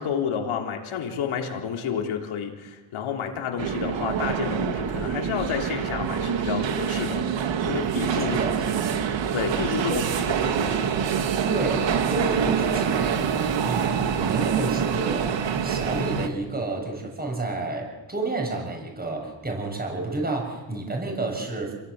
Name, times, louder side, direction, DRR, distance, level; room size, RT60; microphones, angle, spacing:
voice 1, 0.0-8.4 9.3-10.0 10.4-10.9, left 7 dB, 80° left, 3.5 m, -30 dB
sound 1, 3.6-16.3, right 7 dB, 65° right, 2.1 m, -26 dB
voice 2, 8.3-9.0 9.8-10.0 11.5-13.3 13.6-15.4 15.6-21.7, right 2 dB, 20° right, 6.9 m, -30 dB
28.5 x 17.0 x 8.1 m
cardioid pair, 120°, 48 cm